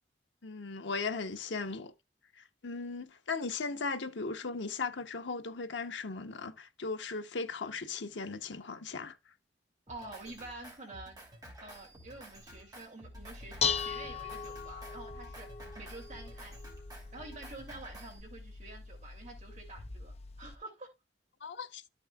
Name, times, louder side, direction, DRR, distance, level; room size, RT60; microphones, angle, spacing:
voice 1, 0.4-1.9 2.3-9.2 21.4-21.8, left 4 dB, 85° left, 0.9 m, -37 dB
Drum kit, 9.9-18.2, right 1 dB, 20° right, 2.9 m, -52 dB
voice 2, 9.9-11.2 11.6-15.5 15.8-16.6 17.1-20.9, right 2 dB, 40° right, 2.9 m, -48 dB
Dishes pots and pans, 13.1-20.5, left 6 dB, 35° left, 0.5 m, -39 dB
13.0 x 6.2 x 2.3 m
head